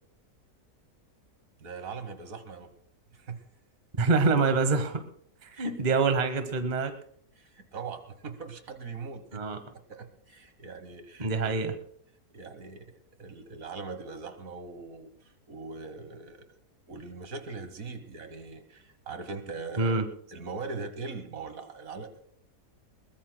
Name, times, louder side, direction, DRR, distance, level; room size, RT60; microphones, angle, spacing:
voice 1, 1.6-2.7 3.1-3.4 4.0-4.1 5.5-6.0 7.4-9.6 9.9-11.5 12.3-12.9 13.2-16.5 16.9-20.0 20.3-22.2, right 4 dB, 60° right, 9 dB, 1.6 m, -41 dB
voice 2, 4.0-5.0 5.4-6.9 9.3-9.6 11.2-11.7 19.8-20.1, right 4 dB, 30° right, 8 dB, 1.1 m, -25 dB
22.0 x 20.0 x 2.2 m, 0.64 s
omnidirectional pair, 1.6 m